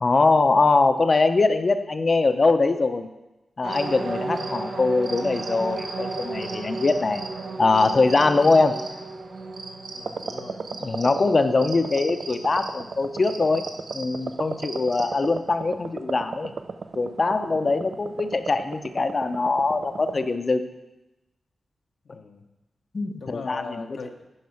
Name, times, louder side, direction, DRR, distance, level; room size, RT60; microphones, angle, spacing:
voice 1, 0.0-3.1 3.6-7.2 7.6-8.8 10.8-13.7 13.9-16.5 17.0-20.7 22.9-23.9, left 3 dB, 40° left, 9 dB, 0.6 m, -22 dB
sound 1, 3.6-15.2, right 3 dB, 75° right, 1.0 m, -35 dB
voice 2, 9.9-10.6 17.5-17.8 22.0-22.5 23.2-24.3, left 4 dB, 75° left, 2 dB, 0.7 m, -39 dB
sound 2, 10.0-20.3, right 4 dB, 60° right, 0.4 m, -36 dB
9.4 x 4.8 x 5.7 m, 1.0 s
wide cardioid pair, 85°, 0 cm